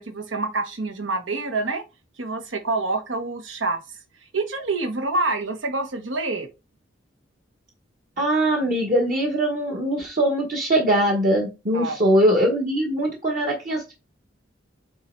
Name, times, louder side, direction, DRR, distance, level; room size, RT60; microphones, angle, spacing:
voice 1, 0.0-1.8 2.2-3.8 4.3-6.5 11.7-12.0, right 3 dB, 80° right, 1.2 m, -27 dB
voice 2, 8.2-13.9, right 1 dB, 45° right, 1.3 m, -21 dB
8.3 x 3.1 x 4.5 m
head